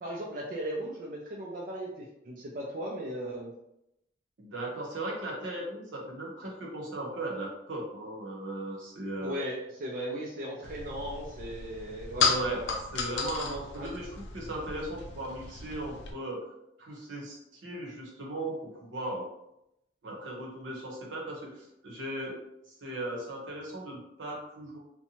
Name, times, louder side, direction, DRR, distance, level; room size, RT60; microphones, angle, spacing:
voice 1, 0.0-3.5 9.2-12.8 13.8-13.9, right 1 dB, 45° right, -3 dB, 0.4 m, -37 dB
voice 2, 4.4-9.4 12.1-12.6 12.9-16.4 16.8-19.2 20.0-22.4 22.8-24.8, right 1 dB, 80° right, -2 dB, 0.8 m, -37 dB
sound 1, 10.6-16.1, left 5 dB, 70° left, 0.4 m, -34 dB
2.7 x 2.1 x 2.8 m, 0.83 s
head